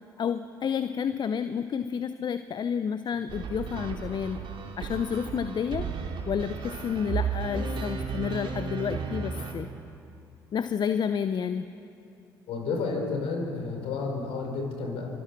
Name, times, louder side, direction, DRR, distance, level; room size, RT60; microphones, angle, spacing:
voice 1, 0.2-4.4 4.8-5.9 6.3-9.7 10.5-11.7, left 7 dB, 40° left, 11 dB, 0.8 m, -30 dB
sound 1, 3.3-9.5, right 5 dB, 50° right, 2.8 m, -34 dB
voice 2, 12.5-15.1, left 4 dB, 60° left, 2 dB, 4.6 m, -31 dB
24.5 x 24.0 x 6.1 m, 2.8 s
figure-of-eight pair, 50°, 11 cm